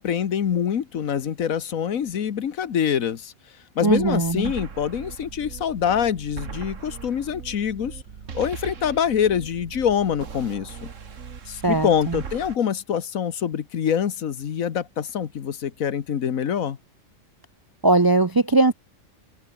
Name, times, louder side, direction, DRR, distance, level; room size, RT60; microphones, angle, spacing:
voice 1, 0.0-3.3 3.7-8.0 8.3-10.9 11.7-16.8, left 8 dB, 85° left, 1.6 m, -25 dB
voice 2, 3.8-4.5 11.5-12.2 17.8-18.7, right 2 dB, 40° right, 0.3 m, -20 dB
sound 1, 3.9-12.6, right 6 dB, 65° right, 1.9 m, -39 dB
open air
omnidirectional pair, 1.4 m